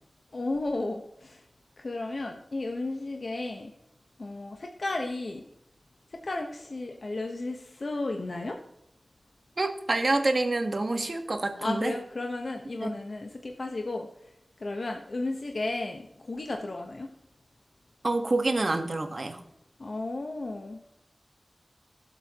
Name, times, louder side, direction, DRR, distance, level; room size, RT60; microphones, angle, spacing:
voice 1, 0.3-1.4 1.8-3.7 4.2-5.4 6.1-8.6 11.6-14.1 14.6-17.1 19.8-20.8, left 2 dB, 65° left, 2 dB, 1.1 m, -33 dB
voice 2, 9.6-11.9 12.8-12.9 18.0-19.4, right 2 dB, 55° right, 6 dB, 1.4 m, -27 dB
17.0 x 8.0 x 3.0 m, 0.79 s
wide cardioid pair, 70°, 0 cm